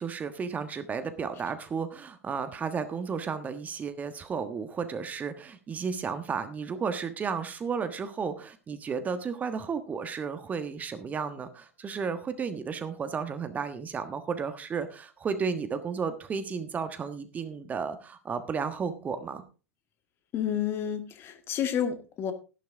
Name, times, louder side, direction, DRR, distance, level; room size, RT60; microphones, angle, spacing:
voice 1, 0.0-19.4, right 6 dB, 20° right, 10 dB, 1.4 m, -33 dB
voice 2, 20.3-22.3, left 9 dB, 35° left, 9 dB, 1.8 m, -30 dB
13.0 x 11.5 x 3.6 m, 0.32 s
figure-of-eight pair, 85°, 7 cm